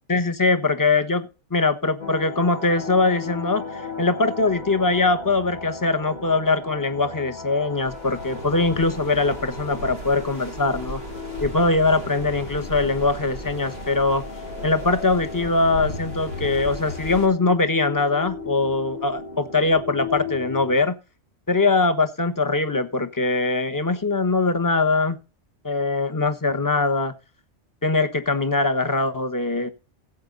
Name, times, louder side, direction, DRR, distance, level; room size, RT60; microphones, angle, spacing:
voice 1, 0.1-11.0 11.4-14.2 14.6-21.0 21.5-25.2 25.6-27.1 27.8-29.7, left 3 dB, 15° left, 9 dB, 1.1 m, -22 dB
sound 1, 2.0-20.7, left 4 dB, 40° left, 1.9 m, -36 dB
sound 2, 7.7-17.3, equal, 85° left, 3.1 m, -36 dB
16.0 x 8.1 x 4.0 m, 0.32 s
omnidirectional pair, 1.2 m